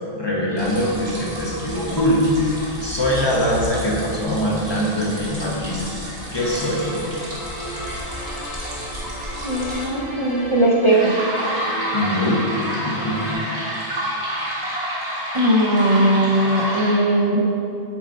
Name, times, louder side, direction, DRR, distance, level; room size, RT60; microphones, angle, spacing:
voice 1, 0.1-2.2 2.8-6.9 11.9-12.4 12.8-13.2, equal, 25° left, -5 dB, 1.0 m, -23 dB
sound 1, 0.6-9.9 10.9-16.9, equal, 65° right, 1.6 m, -30 dB
sound 2, 6.4-13.3, right 1 dB, 45° left, 1.8 m, -35 dB
voice 2, 9.4-11.2 15.3-17.5, right 1 dB, 40° right, -3 dB, 0.4 m, -18 dB
7.1 x 4.0 x 4.1 m, 2.7 s
omnidirectional pair, 1.2 m